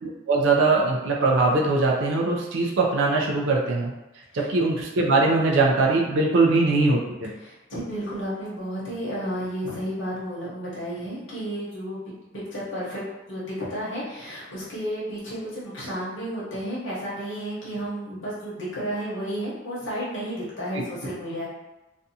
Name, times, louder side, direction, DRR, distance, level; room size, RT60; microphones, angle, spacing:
voice 1, 0.0-3.9 4.3-7.3 20.7-20.8, right 3 dB, 75° right, -2 dB, 0.4 m, -21 dB
voice 2, 7.4-12.0 12.3-13.0 13.3-21.5, equal, 70° left, -8 dB, 0.9 m, -32 dB
2.5 x 2.3 x 2.7 m, 1.0 s
head